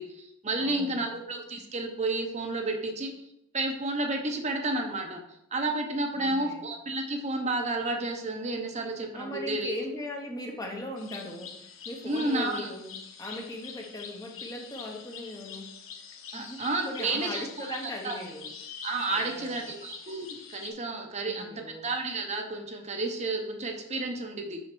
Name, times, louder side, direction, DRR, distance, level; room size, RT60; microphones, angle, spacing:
voice 1, 0.0-3.1 3.5-5.2 5.5-9.7 12.0-12.7 16.3-18.2 18.8-24.6, right 2 dB, 35° right, 3 dB, 0.8 m, -31 dB
voice 2, 0.6-1.2 6.2-6.6 9.1-11.5 11.8-12.9 13.2-15.7 16.3-18.5 19.1-19.7 21.2-21.9, left 1 dB, 20° left, 1 dB, 1.0 m, -39 dB
sound 1, 11.0-20.7, left 6 dB, 75° left, 1.0 m, -45 dB
6.3 x 5.5 x 4.6 m, 0.80 s
head